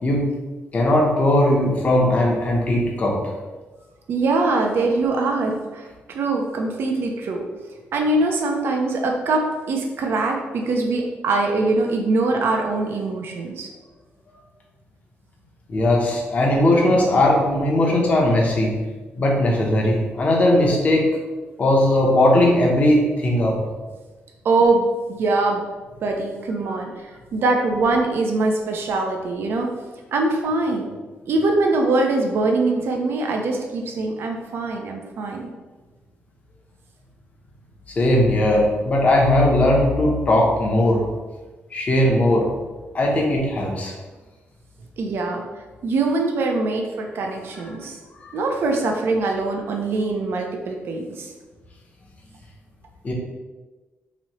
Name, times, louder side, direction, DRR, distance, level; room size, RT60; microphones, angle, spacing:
voice 1, 0.7-3.2 15.7-18.8 19.1-21.1 21.6-23.6 38.0-41.0 41.7-42.5 42.9-43.9 48.2-48.4 53.0-53.1, left 1 dB, 35° left, -2 dB, 0.8 m, -18 dB
voice 2, 4.1-7.4 7.9-13.7 24.4-25.6 26.0-29.7 30.1-30.9 31.3-35.5 45.0-45.4 45.8-48.0 48.3-51.3, right 3 dB, 60° right, 1 dB, 0.5 m, -23 dB
3.1 x 2.8 x 4.1 m, 1.3 s
wide cardioid pair, 155°, 4 cm